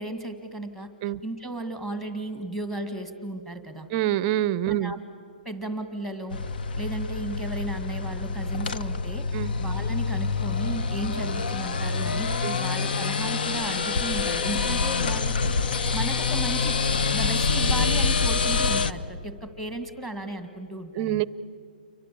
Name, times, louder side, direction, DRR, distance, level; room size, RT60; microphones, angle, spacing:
voice 1, 0.0-0.9 1.2-3.9 4.7-5.0 5.4-6.4 6.8-9.3 9.6-12.3 12.6-15.6 15.9-16.8 17.1-21.3, right 1 dB, 5° left, 8 dB, 2.0 m, -34 dB
voice 2, 3.9-4.9 9.3-9.5 12.4-12.6 20.9-21.2, right 12 dB, 25° right, 19 dB, 0.6 m, -26 dB
sound 1, 6.3-18.9, left 4 dB, 65° left, 1.0 m, -26 dB
29.5 x 23.5 x 8.5 m, 2.4 s
hypercardioid pair, 160°, 5 cm